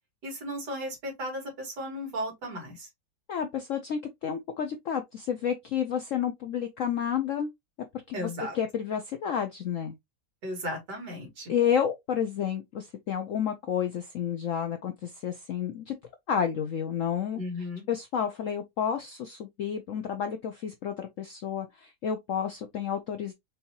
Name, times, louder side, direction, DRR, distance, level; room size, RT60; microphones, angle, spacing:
voice 1, 0.2-2.9 8.1-8.5 10.4-11.5 17.4-17.8, equal, 65° right, 2.5 m, -35 dB
voice 2, 3.3-7.5 8.1-8.3 8.5-9.9 11.5-16.0 16.3-17.4 17.9-23.3, left 8 dB, 70° left, 0.7 m, -30 dB
5.4 x 2.8 x 2.8 m
omnidirectional pair, 2.0 m